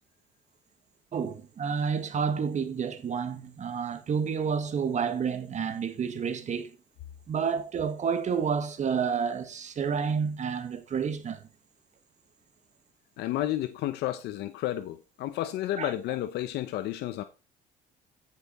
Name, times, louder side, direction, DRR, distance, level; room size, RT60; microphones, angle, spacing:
voice 1, 1.1-6.7 7.3-11.5 15.8-15.9, right 6 dB, 45° right, 1.7 m, -30 dB
voice 2, 13.2-17.2, left 13 dB, 80° left, 0.9 m, -31 dB
14.5 x 5.8 x 4.3 m
cardioid pair, 110°, 17 cm